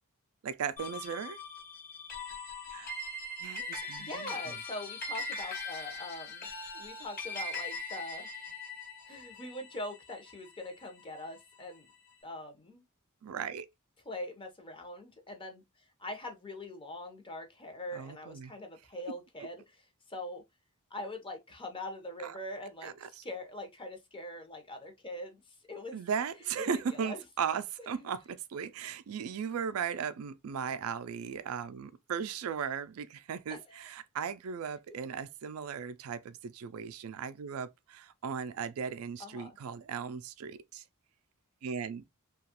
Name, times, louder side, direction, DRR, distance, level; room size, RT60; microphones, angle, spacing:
voice 1, 0.4-1.4 2.7-3.0 3.4-4.3 13.2-13.7 17.9-18.5 22.2-22.3 22.8-23.2 25.9-40.8 41.6-42.0, right 7 dB, 65° right, 0.4 m, -37 dB
sound 1, 0.8-11.4, left 2 dB, 40° left, 1.1 m, -41 dB
voice 2, 4.0-6.5 6.7-8.3 9.1-11.9 12.2-12.8 14.1-19.8 20.1-20.4 20.9-26.0 26.6-27.2 27.8-28.1 33.5-33.9 39.2-39.5, left 1 dB, 20° left, 0.7 m, -43 dB
2.9 x 2.3 x 2.8 m
head